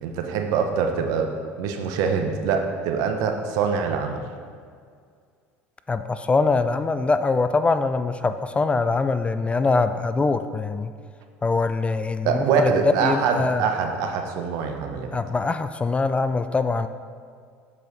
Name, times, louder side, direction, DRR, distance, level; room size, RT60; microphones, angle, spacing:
voice 1, 0.0-4.2 12.2-15.1, right 6 dB, 70° right, 4 dB, 0.8 m, -24 dB
voice 2, 5.9-10.9 11.4-12.7 13.0-13.7 15.1-16.9, left 3 dB, 20° left, 10 dB, 0.3 m, -23 dB
7.4 x 4.5 x 4.0 m, 2.1 s
supercardioid pair, 85°, 6 cm